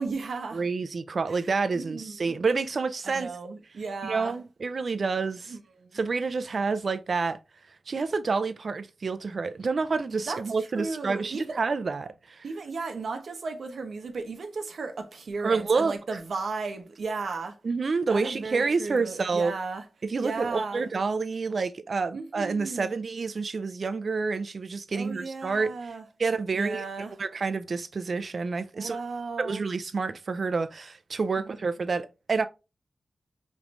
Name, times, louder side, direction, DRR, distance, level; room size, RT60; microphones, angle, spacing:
voice 1, 0.0-0.6 1.7-2.4 3.0-4.3 5.5-6.0 10.2-11.6 12.4-17.6 18.1-19.8 20.2-20.8 22.1-22.9 24.9-26.0 26.5-27.1 28.7-29.6 31.4-31.6, right 4 dB, 85° right, 0.9 m, -35 dB
voice 2, 0.5-3.4 4.0-5.6 5.9-7.4 7.9-12.5 15.4-16.2 17.6-19.5 20.0-25.9 26.2-29.0 29.4-32.5, right 4 dB, 65° right, 0.5 m, -28 dB
5.0 x 3.1 x 2.5 m
cardioid pair, 60°, 0 cm